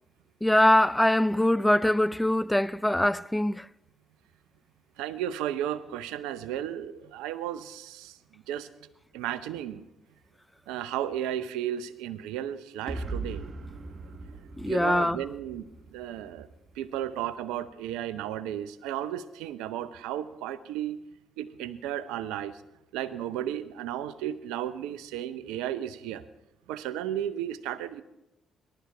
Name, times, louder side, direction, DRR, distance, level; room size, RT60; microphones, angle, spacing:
voice 1, 0.4-3.7 14.6-15.2, left 1 dB, 5° left, 0.3 m, -23 dB
voice 2, 5.0-8.2 8.5-8.7 9.1-9.8 10.7-13.5 14.6-16.5 16.7-21.0 21.4-22.6 22.9-26.2 26.7-28.0, right 11 dB, 75° right, 0.6 m, -34 dB
sound 1, 12.9-16.8, right 3 dB, 45° right, 1.4 m, -39 dB
19.0 x 12.0 x 3.4 m
hypercardioid pair, 45°, 0 cm